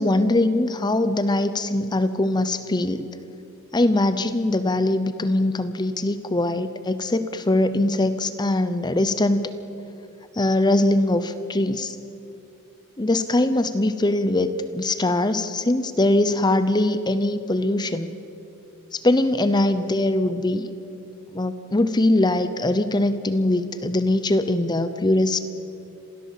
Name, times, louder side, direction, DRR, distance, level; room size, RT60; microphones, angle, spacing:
voice 1, 0.0-3.1 3.7-9.5 10.3-12.0 13.0-18.2 18.9-20.7 21.3-25.4, left 1 dB, 20° left, 11 dB, 0.7 m, -22 dB
27.0 x 17.0 x 7.5 m, 2.8 s
head